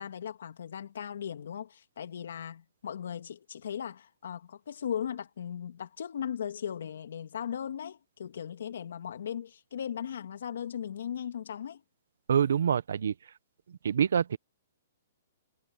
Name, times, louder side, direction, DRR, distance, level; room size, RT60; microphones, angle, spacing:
voice 1, 0.0-11.8, left 8 dB, 70° left, 2.3 m, -38 dB
voice 2, 12.3-13.1 13.7-14.4, right 8 dB, 75° right, 0.9 m, -26 dB
hypercardioid pair, 170°, 0 cm